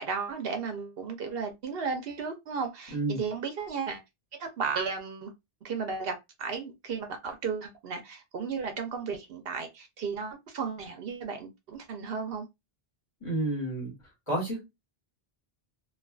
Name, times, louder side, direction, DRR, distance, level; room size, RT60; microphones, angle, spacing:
voice 1, 0.0-4.0 4.4-5.3 5.6-12.5, right 5 dB, 70° right, 0.8 m, -34 dB
voice 2, 13.2-13.9 14.3-14.7, right 2 dB, 30° left, 1.2 m, -30 dB
2.4 x 2.3 x 2.3 m
omnidirectional pair, 1.0 m